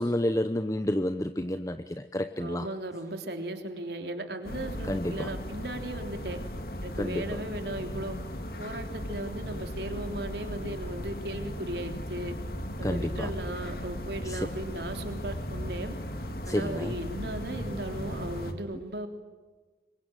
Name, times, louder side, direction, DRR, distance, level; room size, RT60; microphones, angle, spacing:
voice 1, 0.0-2.7 4.9-5.3 7.0-7.4 12.8-13.3 14.3-14.5 16.5-16.9, left 1 dB, 20° left, 9 dB, 0.8 m, -30 dB
voice 2, 2.4-6.4 6.8-8.2 8.6-12.4 12.8-16.0 16.4-19.1, right 1 dB, 70° right, 5 dB, 3.4 m, -37 dB
sound 1, 4.4-18.5, equal, 55° left, 2.6 m, -37 dB
27.0 x 23.0 x 9.1 m, 1.3 s
head